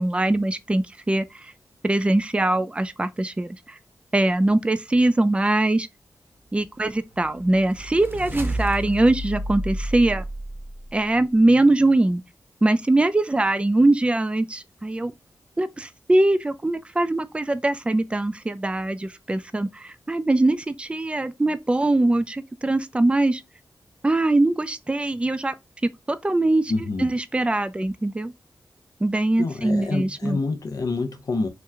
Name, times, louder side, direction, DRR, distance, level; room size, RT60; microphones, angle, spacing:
voice 1, 0.0-1.5 1.8-3.8 4.1-5.9 6.5-10.2 10.9-12.2 12.6-15.1 15.6-23.4 24.0-25.5 26.2-26.7 27.0-28.3 29.0-30.4, right 2 dB, 15° right, 0.4 m, -22 dB
sound 1, 6.9-11.1, right 1 dB, 35° right, 0.8 m, -31 dB
voice 2, 26.7-27.1 29.4-31.5, left 3 dB, 65° left, 0.7 m, -27 dB
3.0 x 2.2 x 3.5 m
cardioid pair, 65°, 7 cm